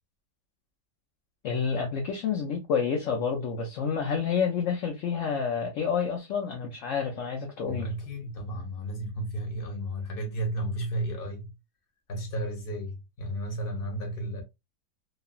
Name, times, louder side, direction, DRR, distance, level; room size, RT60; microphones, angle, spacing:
voice 1, 1.4-7.9, left 6 dB, 65° left, 0.8 m, -29 dB
voice 2, 7.7-11.5 12.1-14.4, right 1 dB, 40° left, 1.0 m, -33 dB
3.1 x 2.5 x 2.3 m
omnidirectional pair, 1.8 m